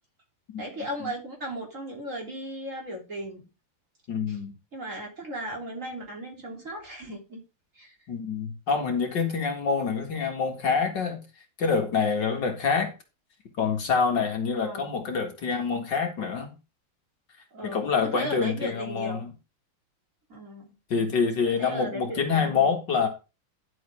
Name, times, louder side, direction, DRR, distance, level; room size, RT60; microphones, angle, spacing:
voice 1, 0.6-3.5 4.3-4.4 4.7-7.4 7.8-8.0 14.5-14.9 17.5-19.3 20.3-20.7 21.4-22.8, equal, 35° right, 3.5 m, -36 dB
voice 2, 4.1-4.5 8.1-11.2 11.6-12.9 13.6-16.5 17.6-19.3 20.9-23.1, left 5 dB, 60° left, 2.5 m, -26 dB
10.5 x 7.8 x 3.5 m
omnidirectional pair, 2.3 m